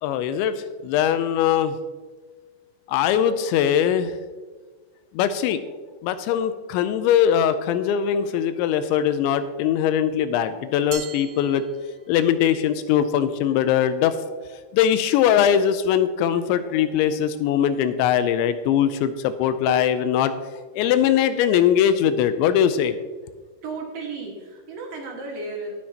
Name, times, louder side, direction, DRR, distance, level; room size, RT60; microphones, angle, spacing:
voice 1, 0.0-1.8 2.9-4.1 5.1-5.6 6.0-11.6 12.1-14.2 14.7-20.3 20.8-23.0, left 9 dB, 85° left, 11 dB, 2.8 m, -21 dB
Glass, 10.9-12.4, right 9 dB, 85° right, 2.1 m, -39 dB
voice 2, 23.6-25.7, right 3 dB, 60° right, -2 dB, 2.8 m, -34 dB
19.0 x 6.5 x 2.8 m, 1.4 s
omnidirectional pair, 5.4 m